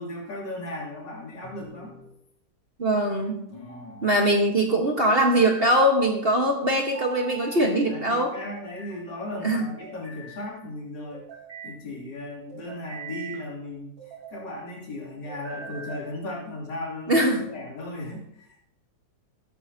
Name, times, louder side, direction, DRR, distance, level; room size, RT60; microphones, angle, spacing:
voice 1, 0.0-1.9 3.5-4.1 7.9-11.3 11.6-18.6, left 1 dB, 70° left, -3 dB, 3.5 m, -36 dB
sound 1, 1.4-2.1 3.5-4.3 5.1-5.9 6.9-7.7 8.3-9.0 9.6-10.5 11.1-11.8 12.5-13.4 14.0-14.5 15.3-16.1, right 4 dB, 75° right, 6.0 m, -42 dB
voice 2, 2.8-3.4 4.0-8.3 9.4-9.6 17.1-17.5, right 1 dB, 35° right, 1 dB, 1.4 m, -22 dB
14.0 x 12.0 x 2.8 m, 0.77 s
omnidirectional pair, 2.0 m